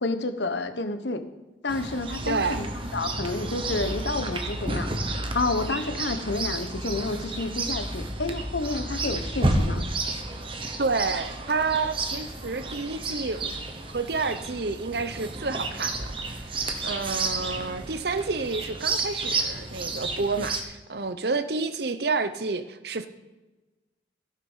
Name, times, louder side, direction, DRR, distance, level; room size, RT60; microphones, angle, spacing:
voice 1, 0.0-1.2 1.6-2.7 2.9-4.9 5.3-9.9, left 2 dB, 70° left, 9 dB, 1.0 m, -29 dB
Chirp tweet, 1.7-20.6, right 2 dB, 30° right, 1.1 m, -31 dB
voice 2, 2.3-2.6 10.8-13.4 13.9-16.1 16.5-23.1, right 4 dB, 60° right, 11 dB, 0.8 m, -29 dB
15.5 x 6.5 x 5.6 m, 1.2 s
head